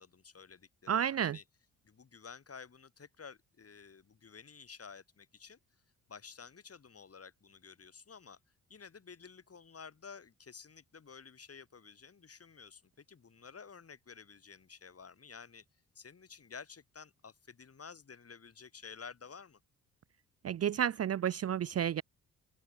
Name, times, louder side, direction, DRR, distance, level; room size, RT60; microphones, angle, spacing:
voice 1, 0.0-1.4 1.8-5.6 6.1-8.4 8.7-15.6 15.9-19.6, left 5 dB, 35° left, 2.7 m, -52 dB
voice 2, 0.9-1.4 20.4-22.0, right 9 dB, 35° right, 0.6 m, -31 dB
figure-of-eight pair, 40°, 42 cm